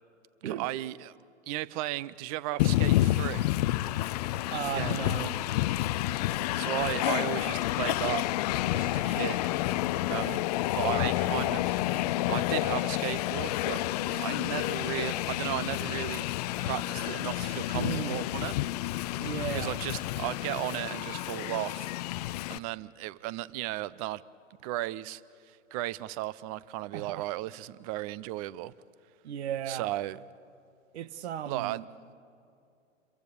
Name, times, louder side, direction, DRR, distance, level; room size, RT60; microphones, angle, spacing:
voice 1, 0.4-1.1 1.5-3.5 4.7-5.0 6.6-8.3 8.7-9.4 10.1-10.4 10.7-11.8 12.3-16.3 16.6-18.5 19.5-21.9 22.5-24.2 24.6-25.2 25.7-28.7 29.7-30.2 31.5-31.8, right 16 dB, 30° right, 0.6 m, -35 dB
Train, 2.6-22.6, left 15 dB, 30° left, 0.5 m, -29 dB
voice 2, 4.5-5.3 17.7-18.2 19.2-19.7 26.9-27.3 29.2-29.9 30.9-31.9, right 10 dB, 55° right, 1.3 m, -35 dB
29.0 x 23.0 x 6.9 m
figure-of-eight pair, 115°, 39 cm